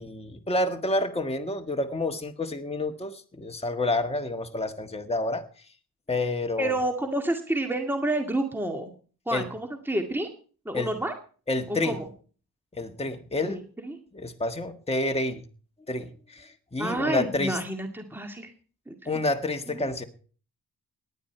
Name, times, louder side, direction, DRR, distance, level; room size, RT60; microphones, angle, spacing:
voice 1, 0.0-5.4 6.1-6.7 9.3-9.4 10.7-10.9 11.5-12.0 12.7-13.6 14.1-15.4 15.9-17.6 19.0-20.0, left 2 dB, 15° left, 5 dB, 1.7 m, -29 dB
voice 2, 6.6-8.9 9.3-10.3 10.7-11.1 11.7-12.1 13.4-14.0 16.8-18.5 18.9-19.2 19.7-19.9, right 1 dB, 5° right, 4 dB, 2.0 m, -29 dB
18.0 x 10.5 x 4.5 m, 0.41 s
cardioid pair, 80°, 38 cm